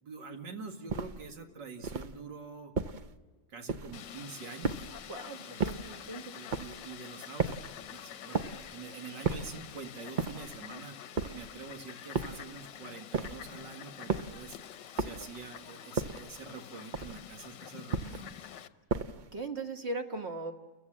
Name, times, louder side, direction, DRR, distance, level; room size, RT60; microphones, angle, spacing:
voice 1, 0.0-2.7 3.5-4.9 5.4-14.6 14.9-18.5, right 4 dB, 85° right, 4 dB, 2.5 m, -46 dB
sound 1, 0.9-1.3 1.8-2.2 2.8-3.1 3.7-4.1 4.6-5.1 5.6-6.0 6.5-6.9 7.4-7.8 8.3-8.7 9.2-9.6 10.2-10.6 11.2-11.6 12.2-12.5 13.1-13.5 14.1-14.4 15.0-15.4 16.0-16.4 16.9-17.3 17.9-18.3 18.9-19.3, right 4 dB, 60° right, 0.4 m, -34 dB
Fowl, 3.9-18.7, left 10 dB, 90° left, 1.5 m, -47 dB
voice 2, 5.1-6.3 19.3-20.5, right 2 dB, 40° right, 5 dB, 1.4 m, -38 dB
29.5 x 15.0 x 7.4 m, 1.4 s
omnidirectional pair, 1.9 m